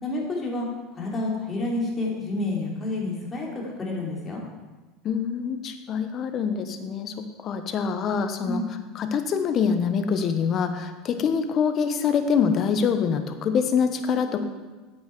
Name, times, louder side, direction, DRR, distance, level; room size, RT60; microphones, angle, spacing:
voice 1, 0.0-0.7 0.9-4.4 8.4-8.7, left 2 dB, 25° left, -3 dB, 3.2 m, -29 dB
voice 2, 5.0-8.6 8.9-14.4, left 6 dB, 40° left, 8 dB, 1.0 m, -25 dB
8.9 x 8.3 x 4.7 m, 1.2 s
hypercardioid pair, 85°, 0 cm